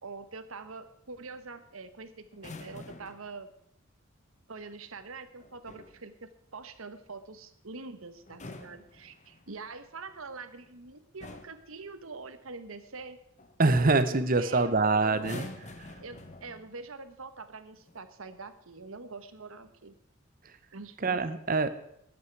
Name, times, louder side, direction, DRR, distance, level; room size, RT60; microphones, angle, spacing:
voice 1, 0.0-3.5 4.5-13.2 14.1-15.5 16.0-19.9 20.7-21.0, right 3 dB, 85° right, 11 dB, 1.2 m, -44 dB
sound 1, 2.3-3.3 5.4-6.0 8.2-9.5 10.6-10.8 11.2-11.7 13.4-13.6 13.9-14.2 15.1-16.8 17.7-18.0, left 2 dB, 35° left, 1.1 m, -46 dB
voice 2, 13.6-15.4 21.0-21.7, right 3 dB, 40° right, 12 dB, 0.8 m, -24 dB
20.0 x 8.5 x 4.7 m, 0.74 s
head